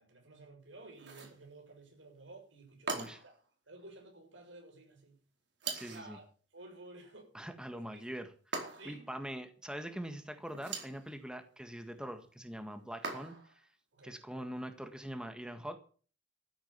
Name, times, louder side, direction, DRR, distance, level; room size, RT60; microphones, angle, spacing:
voice 1, 0.0-3.3 3.7-5.2 5.8-6.3 6.5-7.3 7.9-8.0 8.7-9.1 13.9-14.2, right 2 dB, 90° right, 6.7 m, -53 dB
sound 1, 1.0-1.4 2.9-3.4 5.6-6.1 8.5-9.1 10.5-11.0 13.0-13.6, right 4 dB, 70° right, 4.4 m, -40 dB
voice 2, 5.7-6.2 7.3-8.3 8.8-13.3 14.0-15.8, equal, 5° right, 1.7 m, -43 dB
14.0 x 8.8 x 8.5 m
head